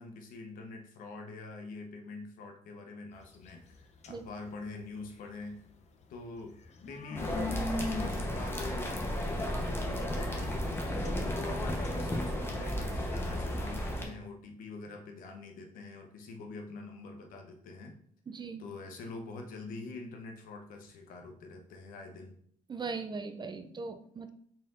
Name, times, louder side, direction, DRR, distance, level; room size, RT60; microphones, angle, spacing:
voice 1, 0.0-5.7 6.1-6.5 6.8-10.5 10.9-17.9 18.6-22.4, left 3 dB, 85° left, 3 dB, 0.8 m, -45 dB
sound 1, 3.2-5.2 5.6-13.9, left 3 dB, 55° left, 0.6 m, -43 dB
sound 2, 7.2-14.1, equal, 15° left, 0.9 m, -33 dB
voice 2, 18.3-18.6 22.7-24.3, right 4 dB, 35° right, 8 dB, 0.4 m, -39 dB
4.2 x 3.9 x 2.5 m, 0.63 s
cardioid pair, 80°, 14 cm